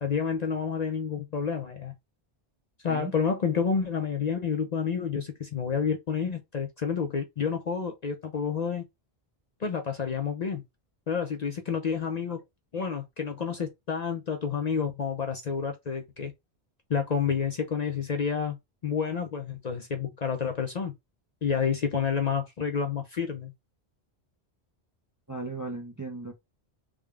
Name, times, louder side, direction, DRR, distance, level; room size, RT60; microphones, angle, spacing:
voice 1, 0.0-1.9 2.8-8.8 9.6-10.6 11.1-12.4 12.7-16.3 16.9-18.6 18.8-20.9 21.4-23.5, left 6 dB, 50° left, 0.6 m, -29 dB
voice 2, 25.3-26.3, right 3 dB, 25° right, 0.5 m, -36 dB
3.6 x 2.3 x 3.2 m
omnidirectional pair, 1.1 m